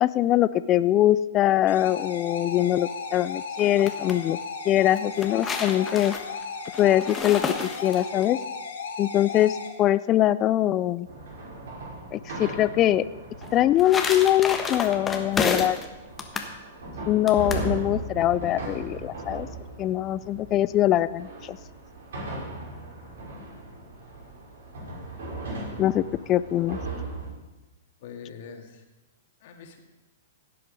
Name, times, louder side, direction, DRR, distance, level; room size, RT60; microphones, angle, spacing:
voice 1, 0.0-4.4 4.7-6.1 6.8-8.4 9.0-11.1 12.1-13.1 13.5-15.8 17.1-19.5 19.8-21.6 25.8-26.8, left 13 dB, 30° left, 15 dB, 0.3 m, -23 dB
sound 1, 1.7-9.7, left 5 dB, 80° left, 2.7 m, -35 dB
sound 2, 3.6-4.2 5.0-8.3 13.4-15.9 16.2-16.5 17.3-17.7, left 4 dB, 15° left, 1.3 m, -30 dB
sound 3, 11.1-27.3, right 2 dB, 70° right, 5.3 m, -38 dB
voice 2, 28.0-28.8 29.4-29.8, left 6 dB, 55° left, 3 dB, 2.2 m, -43 dB
16.5 x 7.7 x 5.3 m, 1.1 s
hypercardioid pair, 120°, 0 cm